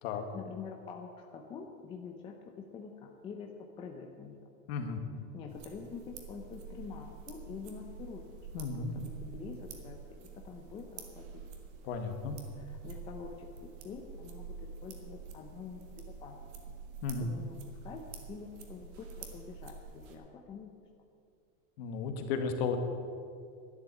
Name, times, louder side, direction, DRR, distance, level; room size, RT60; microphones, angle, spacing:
voice 1, 0.3-3.5 3.8-4.4 5.3-10.0 10.4-11.4 12.5-14.5 14.8-15.8 16.2-16.4 17.2-17.5 17.8-20.7, left 6 dB, 15° left, 2 dB, 0.6 m, -46 dB
voice 2, 4.7-5.0 8.5-9.0 11.8-12.4 17.0-17.3 21.8-22.8, left 5 dB, 50° left, 5 dB, 1.8 m, -34 dB
sound 1, 5.5-20.2, right 5 dB, 35° right, 1.6 m, -48 dB
12.0 x 10.0 x 8.4 m, 2.3 s
supercardioid pair, 165°, 40 cm